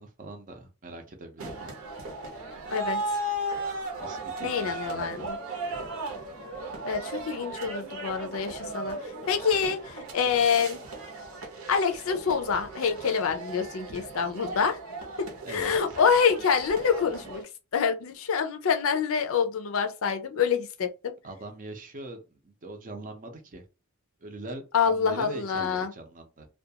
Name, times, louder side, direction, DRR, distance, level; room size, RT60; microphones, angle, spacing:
voice 1, 0.0-1.7 4.0-5.3 15.4-16.0 21.2-23.6 24.2-26.5, right 2 dB, 40° right, 0.6 m, -42 dB
sound 1, 1.4-17.4, right 2 dB, 65° right, 0.8 m, -36 dB
voice 2, 2.7-3.0 4.4-5.4 6.8-10.8 11.7-14.8 15.2-17.4 17.7-21.1 24.7-25.9, left 6 dB, 65° left, 0.5 m, -26 dB
2.4 x 2.2 x 2.7 m
head